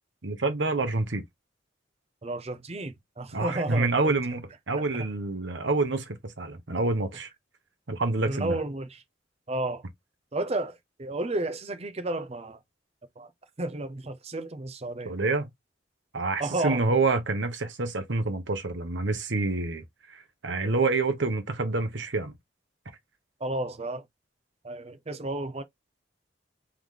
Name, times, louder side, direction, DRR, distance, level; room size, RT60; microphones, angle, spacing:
voice 1, 0.2-1.2 3.3-7.3 7.9-8.6 15.0-15.5 16.1-22.3, right 3 dB, 75° right, 1.1 m, -27 dB
voice 2, 2.2-4.1 4.8-5.1 8.3-9.0 9.5-9.8 10.3-12.6 13.2-13.3 13.6-15.2 16.4-17.0 23.4-24.1 24.6-25.6, right 2 dB, 35° right, 0.7 m, -32 dB
3.5 x 3.2 x 3.7 m
head